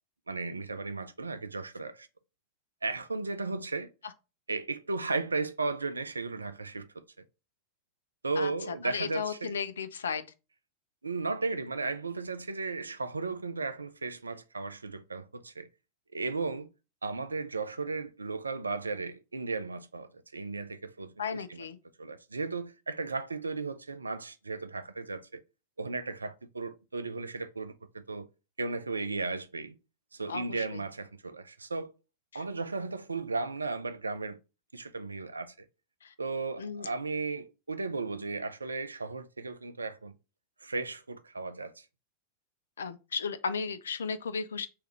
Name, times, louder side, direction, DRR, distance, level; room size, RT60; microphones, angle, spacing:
voice 1, 0.3-2.1 2.8-3.9 4.5-7.0 8.2-9.5 11.0-15.7 16.1-16.7 17.0-21.6 22.0-25.4 25.8-28.3 28.6-29.8 30.1-31.9 32.3-34.4 34.7-35.7 36.2-40.2 40.6-41.9, right 3 dB, 75° right, 0.4 m, -35 dB
voice 2, 8.4-10.3 21.2-21.8 30.3-30.8 32.3-32.4 36.0-36.1 36.6-36.9 42.8-44.7, left 6 dB, 70° left, 0.4 m, -35 dB
3.4 x 3.1 x 4.5 m
figure-of-eight pair, 90°, 0 cm